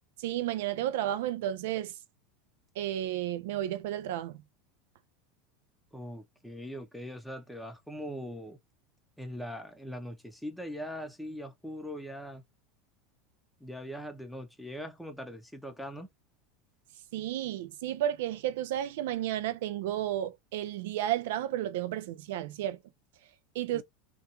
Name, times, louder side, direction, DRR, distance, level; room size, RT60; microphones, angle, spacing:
voice 1, 0.2-1.9 2.8-4.4 17.1-22.8 23.5-23.8, right 12 dB, 70° right, 0.4 m, -32 dB
voice 2, 5.9-8.6 9.2-12.4 13.6-16.1 23.7-23.8, equal, ahead, 0.6 m, -41 dB
2.3 x 2.2 x 2.8 m
hypercardioid pair, 95°, 0 cm